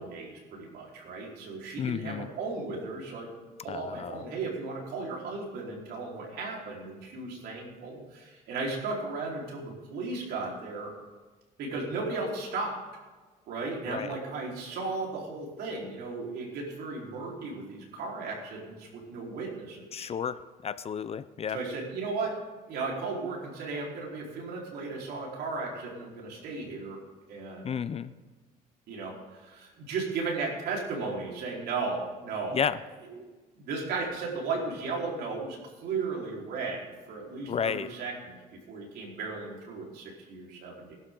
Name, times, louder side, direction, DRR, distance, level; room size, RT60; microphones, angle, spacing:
voice 1, 0.0-3.3 3.6-10.9 11.6-12.8 13.5-20.1 21.5-22.3 22.7-27.0 27.3-27.7 28.9-32.6 33.1-33.3 33.6-41.0, right 3 dB, 75° right, -2 dB, 4.5 m, -35 dB
voice 2, 1.8-2.3 3.7-4.2 13.9-14.2 19.9-20.4 20.6-21.6 27.6-28.1 32.5-32.8 37.5-37.9, left 7 dB, 35° left, 14 dB, 0.6 m, -32 dB
20.5 x 12.0 x 3.9 m, 1.3 s
cardioid pair, 110°, 17 cm